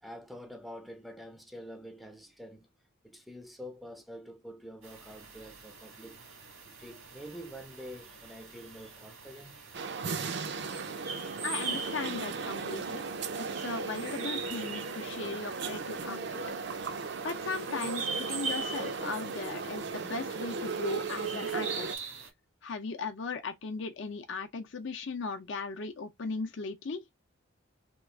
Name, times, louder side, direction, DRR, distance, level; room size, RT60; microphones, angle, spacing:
voice 1, 0.0-2.7 3.0-6.2 6.6-10.3 17.1-17.2 22.7-22.8, equal, ahead, 0.4 m, -47 dB
sound 1, 4.8-22.3, right 5 dB, 85° right, 1.5 m, -43 dB
sound 2, 9.7-22.0, right 4 dB, 55° right, 0.5 m, -36 dB
voice 2, 11.4-13.0 13.4-16.4 17.2-22.0 22.6-27.0, left 4 dB, 60° left, 0.5 m, -37 dB
3.0 x 2.4 x 3.4 m
head